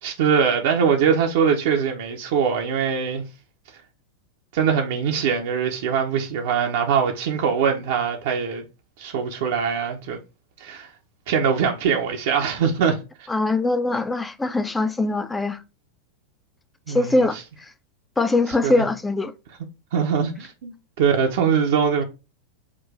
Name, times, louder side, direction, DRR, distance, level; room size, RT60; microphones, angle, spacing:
voice 1, 0.0-3.2 4.5-8.6 9.0-10.2 10.6-10.9 11.3-13.3 16.9-17.4 18.6-18.8 19.9-22.0, right 7 dB, 55° right, 0.7 m, -22 dB
voice 2, 13.3-15.6 16.9-17.7 18.2-19.3, left 2 dB, 10° left, 0.5 m, -22 dB
5.9 x 2.6 x 3.4 m
figure-of-eight pair, 90°, 0 cm